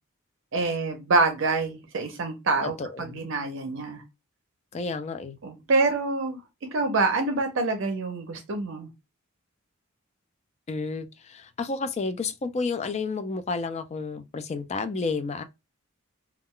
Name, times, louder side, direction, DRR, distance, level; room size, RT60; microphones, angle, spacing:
voice 1, 0.5-4.0 5.4-6.4 6.7-8.9, right 3 dB, 60° right, 0.5 m, -26 dB
voice 2, 2.8-3.2 4.7-5.4 10.7-15.4, left 4 dB, 30° left, 0.3 m, -31 dB
2.3 x 2.1 x 3.6 m
head